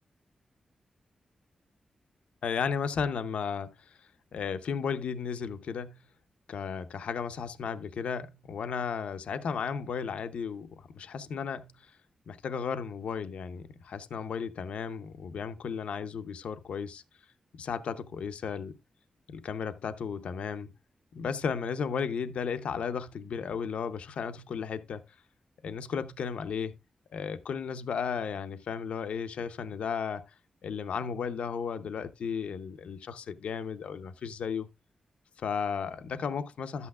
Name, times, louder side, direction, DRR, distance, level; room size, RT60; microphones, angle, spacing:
voice 1, 2.4-3.9 4.3-6.0 6.5-11.7 12.3-17.0 17.5-18.8 19.3-20.7 21.1-25.0 25.6-26.8 27.1-30.2 30.6-34.7 35.4-36.9, left 6 dB, 85° left, 0.7 m, -34 dB
12.0 x 8.3 x 2.3 m
wide cardioid pair, 160°, 2 cm